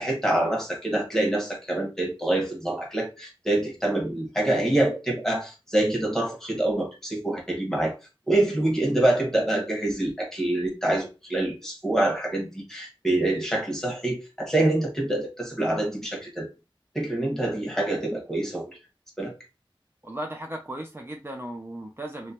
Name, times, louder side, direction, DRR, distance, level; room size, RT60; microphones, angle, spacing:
voice 1, 0.0-7.9 8.3-16.5 16.9-18.8 19.2-19.3, right 1 dB, 5° left, -2 dB, 1.7 m, -26 dB
voice 2, 20.0-22.3, right 1 dB, 25° right, 1 dB, 0.6 m, -36 dB
3.1 x 3.1 x 2.9 m, 0.28 s
wide cardioid pair, 45°, 9 cm